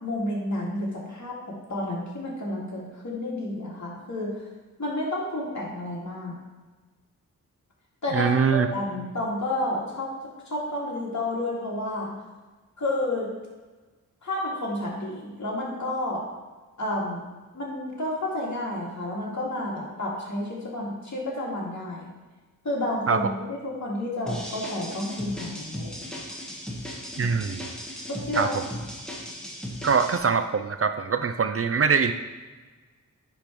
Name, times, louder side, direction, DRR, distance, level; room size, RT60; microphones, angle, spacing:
voice 1, 0.0-4.4 4.8-6.4 8.0-10.1 10.5-12.2 12.8-13.3 14.2-16.2 16.8-17.2 17.5-22.1 22.6-26.1 28.1-28.7, left 1 dB, 60° left, -5 dB, 2.4 m, -30 dB
voice 2, 8.1-8.7 23.1-23.2 27.2-27.7 28.3-28.5 29.8-32.1, right 5 dB, 45° right, 8 dB, 0.4 m, -23 dB
Basic Break, 24.3-30.2, equal, ahead, 1.4 m, -36 dB
9.9 x 3.6 x 4.6 m, 1.3 s
wide cardioid pair, 80°, 33 cm